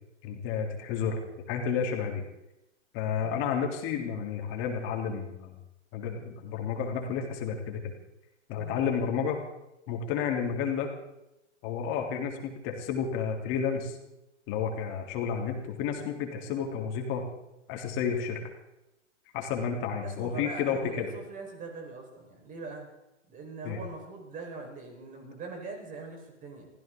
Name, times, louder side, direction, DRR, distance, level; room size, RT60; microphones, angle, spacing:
voice 1, 0.2-1.2 1.5-2.2 2.9-5.5 5.9-7.9 8.5-9.4 9.9-10.9 11.6-14.0 14.5-17.3 17.7-18.4 19.3-21.1 23.6-23.8, left 7 dB, 35° left, 2 dB, 3.5 m, -31 dB
voice 2, 20.0-22.9 23.3-26.7, right 3 dB, 20° right, 2 dB, 4.8 m, -42 dB
23.5 x 16.0 x 3.9 m, 0.90 s
hypercardioid pair, 125°, 35 cm